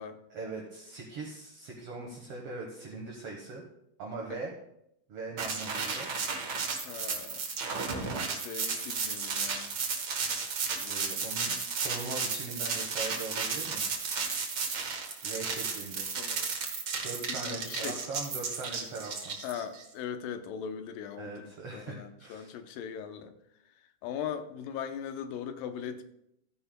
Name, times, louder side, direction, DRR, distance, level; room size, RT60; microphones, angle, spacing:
voice 1, 0.3-3.6 4.0-4.5 5.1-6.1 8.7-8.8 10.8-13.9 15.2-16.1 17.0-19.4 21.2-22.5, right 3 dB, 55° right, 1.8 m, -41 dB
sound 1, 5.4-19.8, right 5 dB, 85° right, 0.9 m, -33 dB
voice 2, 6.8-7.4 8.3-9.7 10.7-11.2 16.2-16.5 16.9-18.0 19.4-23.3 24.0-26.0, left 8 dB, 80° left, 2.4 m, -40 dB
15.5 x 9.6 x 2.2 m
omnidirectional pair, 4.0 m